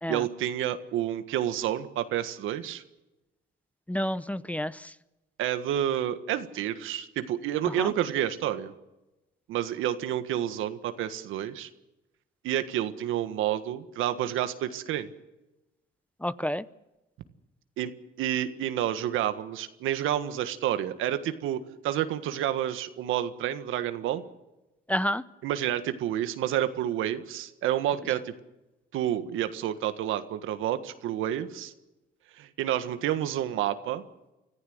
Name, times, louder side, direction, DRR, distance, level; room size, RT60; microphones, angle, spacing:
voice 1, 0.1-2.8 5.4-8.7 9.5-11.7 12.4-15.1 17.8-17.9 18.2-24.2 25.4-28.3 28.9-31.7 32.4-34.0, right 11 dB, 90° right, 10 dB, 1.6 m, -29 dB
voice 2, 3.9-4.9 7.8-7.9 16.2-16.6 24.9-25.2, equal, 5° left, 16 dB, 0.8 m, -29 dB
25.0 x 15.0 x 8.0 m, 0.98 s
cardioid pair, 90°, 20 cm